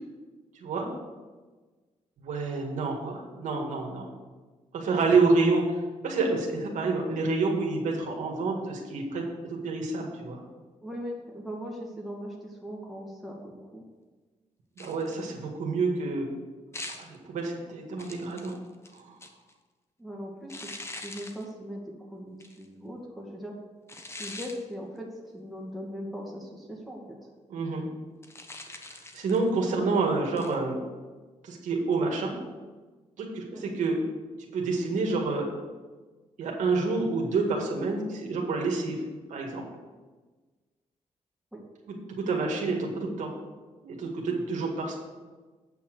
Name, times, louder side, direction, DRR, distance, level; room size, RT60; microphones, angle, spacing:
voice 1, 2.2-4.1 4.7-5.6 6.0-10.4 14.8-16.3 16.9-18.6 18.9-19.0 27.5-27.9 29.1-30.8 31.4-32.3 33.2-34.0 34.5-35.5 36.4-39.0 39.3-39.6 41.9-43.3 43.8-44.9, right 3 dB, 90° right, 0 dB, 1.9 m, -28 dB
voice 2, 10.8-13.8 20.0-23.6 24.2-27.2 41.5-41.7, equal, ahead, -2 dB, 2.1 m, -39 dB
sound 1, 14.8-15.3 16.7-17.2 18.0-19.5 20.5-21.4 22.4-22.6 23.9-24.6 28.2-29.5 30.4-30.6, left 2 dB, 20° left, 1.0 m, -42 dB
8.7 x 5.8 x 6.6 m, 1.3 s
cardioid pair, 105°, 12 cm